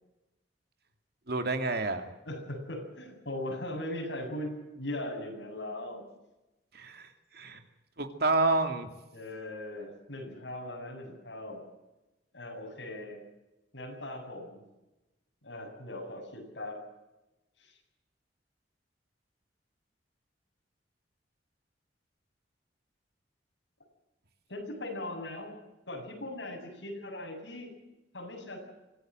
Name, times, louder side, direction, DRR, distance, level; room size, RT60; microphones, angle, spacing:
voice 1, 1.3-2.0 6.7-7.1 7.3-7.6 8.0-8.9, right 2 dB, 60° right, 7 dB, 2.5 m, -28 dB
voice 2, 2.2-6.0 9.1-11.6 12.3-13.2 13.7-14.6 15.4-16.8 17.6-17.7 24.5-25.5 25.9-27.7 28.1-28.6, left 1 dB, 75° left, 1 dB, 7.8 m, -39 dB
25.0 x 16.5 x 7.7 m, 0.99 s
head